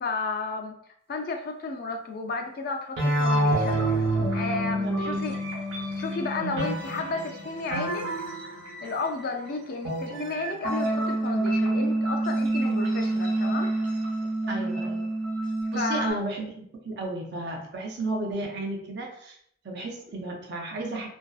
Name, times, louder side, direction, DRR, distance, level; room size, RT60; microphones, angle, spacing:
voice 1, 0.0-0.8 1.1-5.4 5.9-8.3 8.8-13.7 15.7-16.2, left 3 dB, 45° left, 4 dB, 0.3 m, -33 dB
sound 1, 3.0-9.1 9.8-16.1, right 1 dB, 75° right, 0.8 m, -27 dB
voice 2, 4.8-5.2 14.5-15.1 15.7-19.4 19.6-21.1, right 2 dB, 55° right, 1 dB, 0.5 m, -33 dB
2.5 x 2.3 x 2.3 m, 0.67 s
head